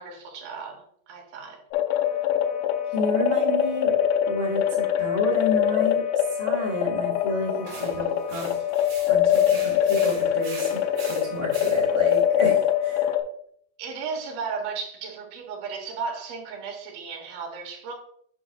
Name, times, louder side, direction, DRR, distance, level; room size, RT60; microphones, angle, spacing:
voice 1, 0.0-1.6 13.8-17.9, right 5 dB, 75° right, 3.0 m, -35 dB
sound 1, 1.7-13.2, left 10 dB, 80° left, 2.1 m, -23 dB
voice 2, 2.9-3.9 4.3-8.5 9.1-10.7 11.0-13.1, equal, 50° left, 0.8 m, -30 dB
sound 2, 7.6-12.2, right 4 dB, 50° right, 1.7 m, -42 dB
8.4 x 6.0 x 2.3 m
omnidirectional pair, 4.5 m